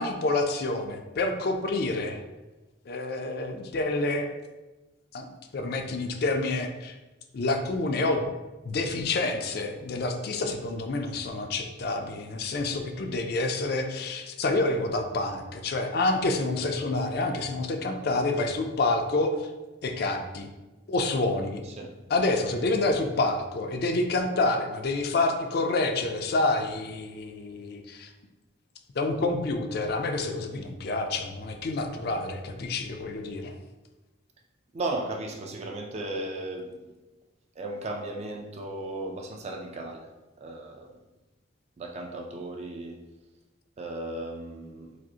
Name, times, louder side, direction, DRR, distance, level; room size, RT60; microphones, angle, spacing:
voice 1, 0.0-2.2 2.9-4.3 5.1-7.0 7.3-8.3 8.6-19.5 19.8-20.5 20.9-21.6 22.1-28.1 29.0-33.5, left 2 dB, 50° left, 5 dB, 0.4 m, -28 dB
voice 2, 34.7-36.9 37.6-40.1 40.4-41.0 41.8-43.0 43.8-45.0, right 2 dB, 35° right, 2 dB, 0.3 m, -35 dB
4.9 x 2.0 x 2.8 m, 1.1 s
head